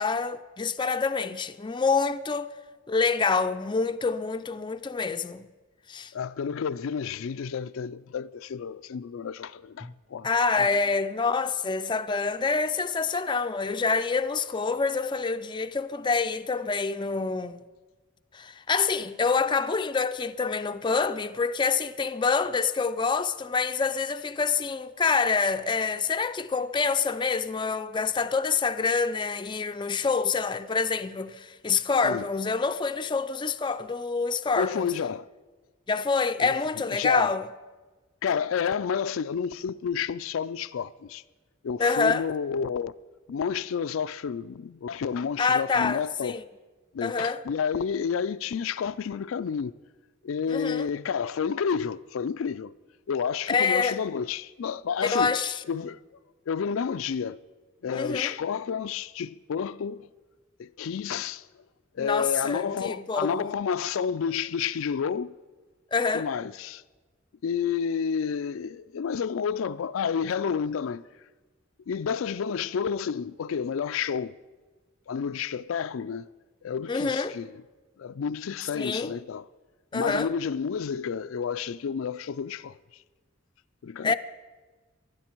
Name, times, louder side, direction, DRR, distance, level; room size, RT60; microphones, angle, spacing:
voice 1, 0.0-2.5 2.9-5.5 5.9-6.1 9.8-9.9 10.2-17.6 18.3-34.9 35.9-37.5 41.8-42.2 45.4-46.4 47.0-47.4 50.5-50.9 53.5-54.0 55.0-55.6 57.9-58.3 62.0-63.5 65.9-66.3 76.9-77.4 78.7-79.1 79.9-80.3 84.0-84.1, left 4 dB, 25° left, 0.4 m, -26 dB
voice 2, 6.1-10.3 10.6-10.7 32.0-32.3 34.6-35.3 36.4-36.6 36.9-37.3 38.2-41.2 41.6-42.9 43.3-46.4 46.9-49.7 50.2-52.7 53.1-55.4 55.7-56.0 56.5-57.4 57.8-60.1 60.6-61.5 61.9-65.3 66.1-66.8 67.4-71.0 71.9-74.4 75.1-76.3 76.6-77.5 78.0-79.5 79.9-82.8 83.8-84.1, left 6 dB, 85° left, 0.4 m, -30 dB
19.5 x 12.5 x 4.5 m
head